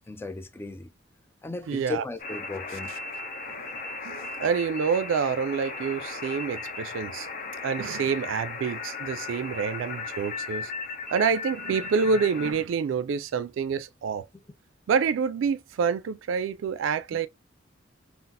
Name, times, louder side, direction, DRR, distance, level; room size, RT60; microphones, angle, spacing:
voice 1, 0.1-0.9 1.4-2.9, left 3 dB, 10° left, 0.3 m, -36 dB
voice 2, 1.7-2.0 3.5-3.6 4.0-7.3 7.6-10.7 11.1-14.3 14.9-17.3, right 6 dB, 85° right, 0.3 m, -27 dB
sound 1, 2.2-12.5, left 4 dB, 45° left, 0.8 m, -36 dB
3.9 x 2.0 x 2.5 m
head